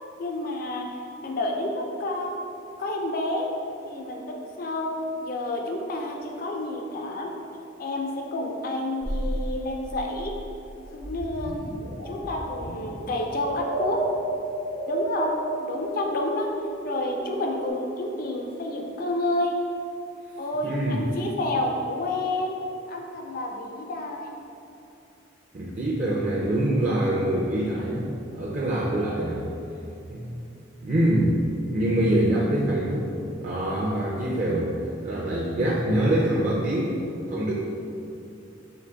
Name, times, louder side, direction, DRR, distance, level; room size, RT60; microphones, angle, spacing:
voice 1, 0.2-2.3 2.8-3.5 3.9-4.9 5.2-7.3 7.8-10.4 10.9-11.8 12.1-14.0 14.9-19.6 20.4-22.6 22.9-24.3, left 1 dB, 50° left, 1 dB, 0.4 m, -29 dB
sound 1, 9.0-17.7, right 1 dB, 70° right, 0.9 m, -32 dB
voice 2, 20.6-21.0 25.5-28.1 28.3-29.5 30.1-30.3 30.8-31.4 31.7-33.1 33.4-34.7 35.0-37.0 37.3-37.5, right 1 dB, 40° right, -4 dB, 0.4 m, -24 dB
3.8 x 3.3 x 3.3 m, 2.7 s
head